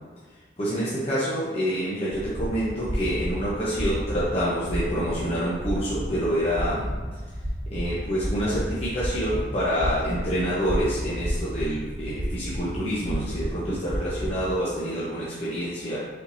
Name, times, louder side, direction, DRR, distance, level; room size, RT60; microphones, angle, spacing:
voice 1, 0.6-6.9 7.7-16.0, equal, 35° left, -8 dB, 0.8 m, -27 dB
sound 1, 2.1-14.6, equal, 50° right, 1.4 m, -32 dB
4.4 x 4.3 x 2.7 m, 1.4 s
head